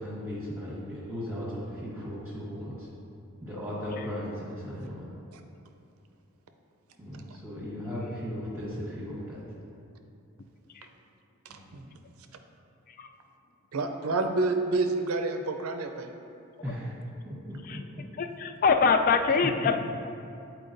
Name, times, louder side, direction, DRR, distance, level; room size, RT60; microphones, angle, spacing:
voice 1, 0.0-2.9 3.4-5.0 7.0-9.4 11.5-11.8 16.6-16.9 17.2-18.0 19.4-19.8, equal, 15° right, -10 dB, 1.0 m, -36 dB
voice 2, 11.5-11.9 13.7-16.1, right 3 dB, 70° right, 6 dB, 0.5 m, -28 dB
voice 3, 18.2-19.9, left 5 dB, 40° left, 6 dB, 0.3 m, -24 dB
8.6 x 4.5 x 2.6 m, 2.6 s
head